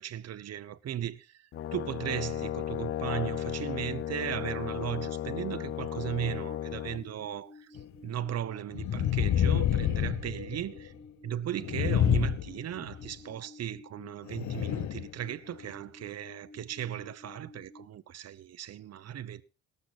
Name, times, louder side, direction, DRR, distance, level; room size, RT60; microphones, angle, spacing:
voice 1, 0.0-10.9 11.2-19.4, right 10 dB, 55° right, 0.9 m, -37 dB
Brass instrument, 1.5-7.0, left 11 dB, 45° left, 0.6 m, -35 dB
sound 1, 3.9-17.9, left 3 dB, 20° left, 4.8 m, -53 dB
sound 2, 7.8-7.9 8.7-10.9 11.6-13.1 14.3-15.1 15.6-15.7, left 11 dB, 70° left, 0.9 m, -28 dB
18.5 x 6.9 x 4.2 m
cardioid pair, 90°, 30 cm